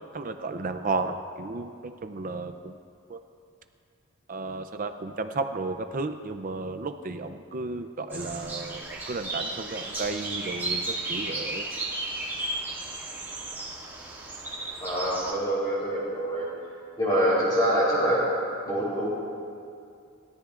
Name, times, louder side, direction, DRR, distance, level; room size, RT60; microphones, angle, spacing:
voice 1, 0.1-2.7 3.1-3.2 4.3-11.7, right 3 dB, 40° right, 8 dB, 0.5 m, -33 dB
sound 1, 8.1-15.3, right 2 dB, 10° right, 2.1 m, -34 dB
voice 2, 14.8-16.5 17.0-18.3 18.6-19.1, equal, 20° left, -9 dB, 3.6 m, -25 dB
29.0 x 13.5 x 2.5 m, 2.4 s
head